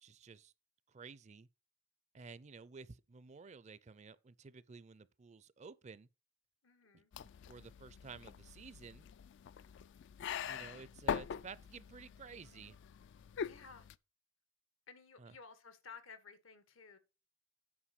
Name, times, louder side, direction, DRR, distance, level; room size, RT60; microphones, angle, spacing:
voice 1, 0.0-0.5 0.9-1.5 2.1-6.1 6.9-9.1 10.5-12.8 15.2-15.3, right 5 dB, 35° right, 0.4 m, -53 dB
voice 2, 6.6-7.1 13.4-13.9 14.9-17.0, left 5 dB, 80° left, 1.2 m, -55 dB
sound 1, 7.1-14.0, left 7 dB, 65° left, 0.3 m, -44 dB
8.8 x 4.9 x 5.7 m
head